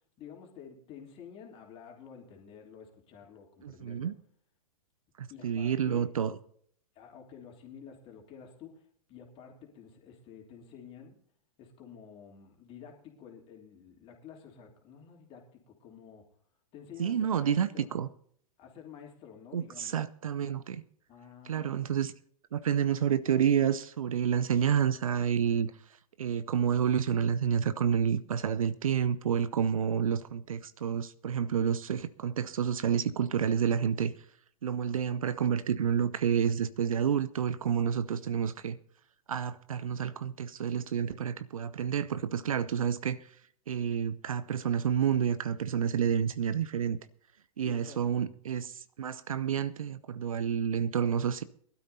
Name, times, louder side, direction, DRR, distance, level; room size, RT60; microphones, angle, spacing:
voice 1, 0.2-4.1 5.3-6.1 6.9-11.2 11.6-16.2 16.7-17.9 18.6-20.0 21.1-21.8 47.6-48.2, left 7 dB, 30° left, 3.1 m, -50 dB
voice 2, 3.6-4.1 5.2-6.4 17.0-18.1 19.5-20.8 21.5-22.1 22.5-25.7 26.2-34.1 34.6-38.8 39.3-43.2 43.7-47.0 47.6-48.7 49.0-51.4, right 8 dB, 65° right, 0.7 m, -29 dB
22.5 x 12.5 x 2.7 m
figure-of-eight pair, 110°, 19 cm